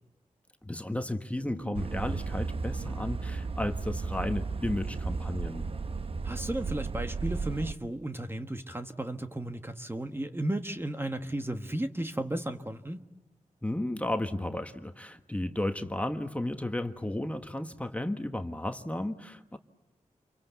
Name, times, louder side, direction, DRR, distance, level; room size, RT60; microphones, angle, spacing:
voice 1, 0.6-5.6 13.6-19.6, left 1 dB, 10° left, 6 dB, 1.5 m, -33 dB
Human voice, 1.3-6.0 6.3-6.4, right 3 dB, 80° right, 3.8 m, -54 dB
sound 1, 1.7-7.7, right 4 dB, 45° right, 0.9 m, -34 dB
voice 2, 6.2-13.0, right 1 dB, 15° right, 6 dB, 1.4 m, -34 dB
28.5 x 24.0 x 8.2 m, 0.99 s
cardioid pair, 75°, 13 cm